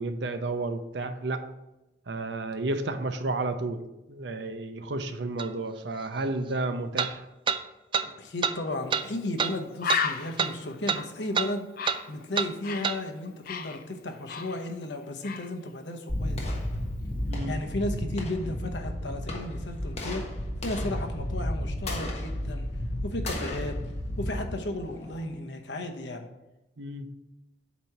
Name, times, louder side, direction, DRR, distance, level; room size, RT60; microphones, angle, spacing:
voice 1, 0.0-1.4 2.1-3.8 4.1-7.2 17.3-17.6 26.8-27.1, right 2 dB, 75° right, 8 dB, 0.6 m, -31 dB
sound 1, 5.4-5.5 7.0-7.1 7.5-7.6 7.9-8.1 8.4-8.6 8.9-9.1 9.4-9.5 9.9-10.0 10.4-10.5 10.9-11.0 11.3-11.5 11.9-12.0 12.4-12.5 12.8-13.0, right 6 dB, 30° right, 0.3 m, -27 dB
voice 2, 8.0-11.6 12.1-16.6 17.4-20.2 20.6-22.7 23.0-23.8 24.2-26.3, left 1 dB, 80° left, 4 dB, 0.9 m, -34 dB
Bird, 8.9-9.1 9.4-9.5 9.8-13.0 13.3-14.9 15.2-15.5, left 6 dB, 55° left, 0.5 m, -34 dB
sound 2, 16.1-25.2, left 1 dB, 35° left, 1.2 m, -33 dB
8.3 x 3.0 x 5.8 m, 0.96 s
head